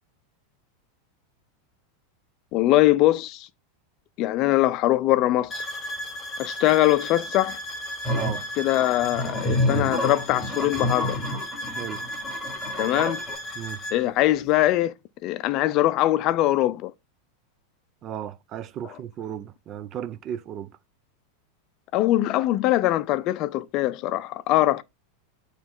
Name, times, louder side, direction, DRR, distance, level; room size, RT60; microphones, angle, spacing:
voice 1, 2.5-3.5 4.2-5.7 6.4-7.6 8.6-11.2 12.8-13.2 13.9-14.9 15.2-16.9 18.8-19.0 21.9-24.8, left 15 dB, 40° left, 0.5 m, -22 dB
sound 1, 5.5-14.0, left 1 dB, 15° left, 1.7 m, -35 dB
sound 2, 8.0-8.4 9.0-13.4, left 1 dB, 10° right, 4.6 m, -28 dB
voice 2, 8.1-8.4 11.7-12.0 13.6-13.8 18.0-20.7, right 10 dB, 35° right, 0.5 m, -35 dB
8.6 x 3.2 x 3.7 m
supercardioid pair, 145°, 0 cm